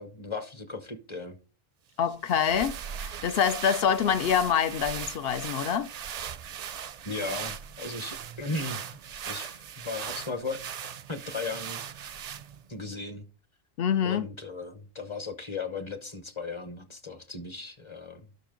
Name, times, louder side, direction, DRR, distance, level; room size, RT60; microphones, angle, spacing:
voice 1, 0.0-1.4 7.0-8.8 9.3-11.8 12.7-13.3 14.0-18.2, left 3 dB, 30° left, 0.8 m, -36 dB
voice 2, 2.0-5.9 13.8-14.3, left 8 dB, 75° left, 0.8 m, -26 dB
sound 1, 2.1-12.7, right 8 dB, 55° right, 0.5 m, -39 dB
12.0 x 5.0 x 3.8 m
omnidirectional pair, 1.0 m